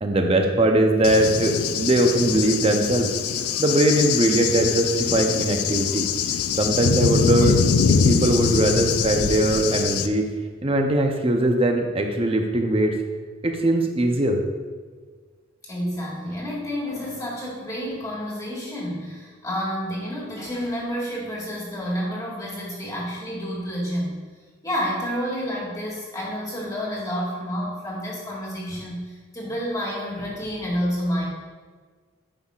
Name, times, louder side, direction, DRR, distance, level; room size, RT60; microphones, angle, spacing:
voice 1, 0.0-3.1 3.6-6.1 6.6-7.6 7.9-10.3 10.6-13.0 13.4-14.4, right 1 dB, 25° right, 4 dB, 0.6 m, -21 dB
Cricket / Thunder, 1.0-10.1, left 6 dB, 85° left, 0.4 m, -23 dB
voice 2, 15.7-24.2 24.6-31.3, equal, 15° left, -5 dB, 1.6 m, -29 dB
10.5 x 5.5 x 2.4 m, 1.5 s
head